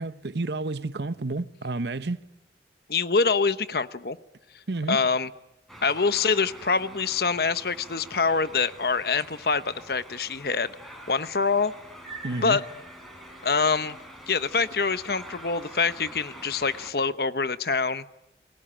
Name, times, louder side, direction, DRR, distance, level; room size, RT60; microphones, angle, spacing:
voice 1, 0.0-2.2 4.7-5.0 12.2-12.6, right 2 dB, 75° right, 0.9 m, -30 dB
voice 2, 2.9-4.2 4.9-5.3 5.8-11.7 12.4-12.6 13.4-14.0 14.3-18.0, left 4 dB, 60° left, 0.9 m, -25 dB
sound 1, 5.7-16.9, right 1 dB, ahead, 4.7 m, -45 dB
29.5 x 21.5 x 8.9 m
head